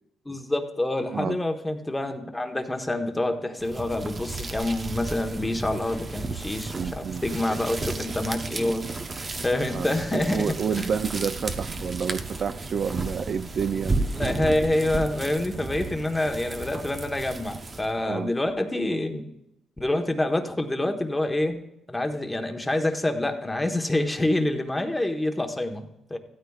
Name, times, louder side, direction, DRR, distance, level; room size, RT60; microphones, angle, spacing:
voice 1, 0.2-8.9 9.1-10.9 14.1-19.2 19.8-21.6 21.9-26.2, left 1 dB, 10° left, 5 dB, 1.2 m, -27 dB
sound 1, 3.6-18.0, right 3 dB, 35° right, 0.9 m, -33 dB
voice 2, 6.7-7.6 9.7-14.0 18.0-18.3, right 6 dB, 50° right, 12 dB, 0.4 m, -30 dB
15.5 x 13.0 x 2.4 m, 0.83 s
cardioid pair, 90°, 0 cm